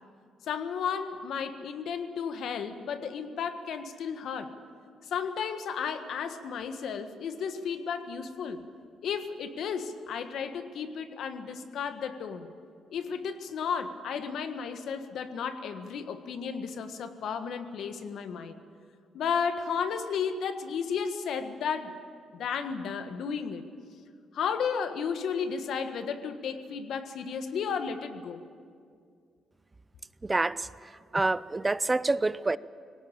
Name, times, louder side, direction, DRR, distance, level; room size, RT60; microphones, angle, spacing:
voice 1, 0.5-4.5 5.1-8.6 9.0-12.5 12.9-18.6 19.1-21.9 22.3-23.6 24.3-28.4, left 6 dB, 70° left, 8 dB, 1.5 m, -33 dB
voice 2, 30.2-32.6, right 2 dB, 20° right, 18 dB, 0.5 m, -28 dB
19.5 x 17.5 x 8.8 m, 2.2 s
cardioid pair, 90°, 0 cm